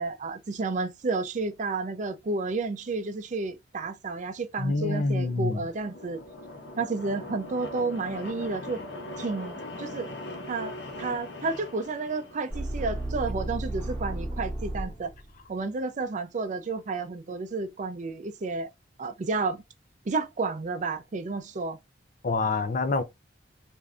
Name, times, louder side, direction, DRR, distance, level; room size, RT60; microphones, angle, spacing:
voice 1, 0.0-6.2 6.8-8.8 9.2-10.1 10.5-15.1 15.5-18.7 19.0-19.6 20.1-21.8, right 3 dB, 45° right, 0.4 m, -31 dB
voice 2, 4.6-5.6 22.2-23.0, left 3 dB, 50° left, 0.4 m, -26 dB
sound 1, 5.3-13.1, left 1 dB, 90° left, 0.8 m, -41 dB
sound 2, 12.5-15.3, right 1 dB, 10° left, 1.7 m, -33 dB
3.4 x 2.6 x 2.3 m
head